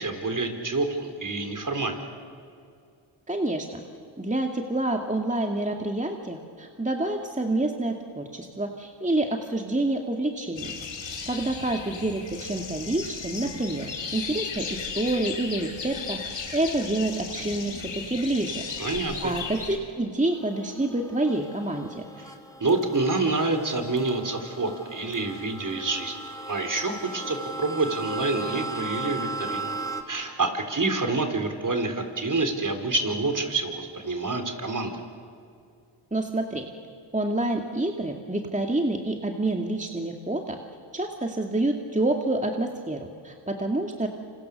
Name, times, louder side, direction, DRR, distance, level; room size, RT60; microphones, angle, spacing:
voice 1, 0.0-2.1 18.8-19.3 22.6-26.1 26.5-29.7 30.1-35.0, right 3 dB, 40° right, 6 dB, 4.1 m, -27 dB
voice 2, 3.3-3.8 4.2-10.8 11.3-18.7 19.2-22.0 36.1-36.7 37.1-40.6 40.9-44.1, right 2 dB, 15° right, 3 dB, 2.4 m, -28 dB
sound 1, 10.6-19.8, left 5 dB, 60° left, 3.9 m, -36 dB
sound 2, 20.3-30.0, right 2 dB, 5° left, 2.9 m, -37 dB
27.5 x 26.0 x 6.7 m, 2.4 s
supercardioid pair, 40°, 49 cm